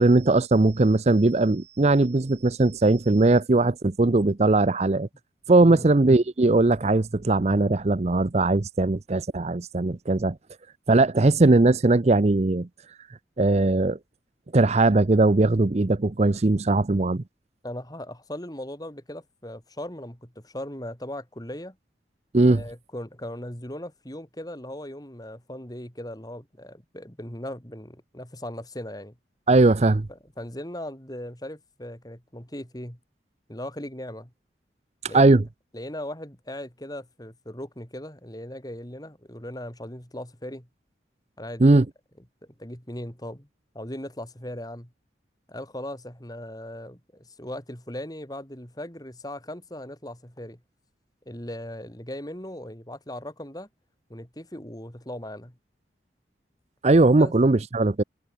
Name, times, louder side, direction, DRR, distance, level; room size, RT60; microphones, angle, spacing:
voice 1, 0.0-5.1 5.5-10.4 10.9-12.7 13.4-14.0 14.5-17.2 22.3-22.6 29.5-30.1 35.0-35.4 41.6-41.8 56.8-58.0, right 2 dB, 35° right, 0.6 m, -19 dB
voice 2, 17.6-21.8 22.5-29.2 30.4-33.0 33.5-34.3 35.1-35.4 35.7-40.7 41.4-41.9 42.6-43.5 43.7-44.9 45.5-50.6 51.3-53.7 54.1-55.6 57.2-57.3, left 1 dB, 20° left, 3.8 m, -38 dB
head